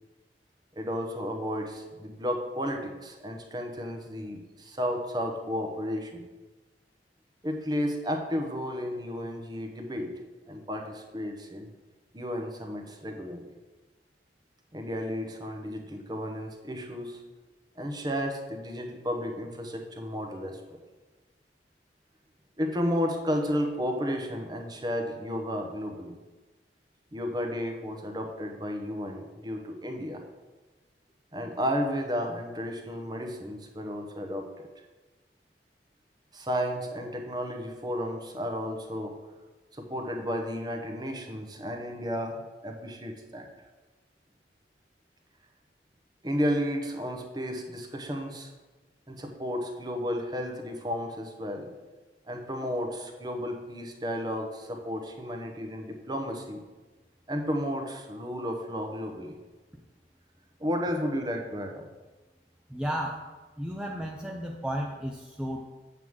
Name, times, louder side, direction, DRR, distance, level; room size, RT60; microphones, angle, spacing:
voice 1, 0.8-6.2 7.4-10.1 10.5-11.7 12.1-13.4 14.7-17.2 17.8-20.6 22.6-26.1 27.1-30.2 31.3-34.5 36.3-39.2 39.7-43.5 46.2-48.5 49.1-51.7 52.3-56.6 57.3-59.4 60.6-61.8, equal, 25° right, 3 dB, 0.8 m, -33 dB
voice 2, 62.7-63.3 63.6-65.7, equal, 5° right, -1 dB, 0.4 m, -33 dB
8.0 x 3.6 x 6.2 m, 1.2 s
head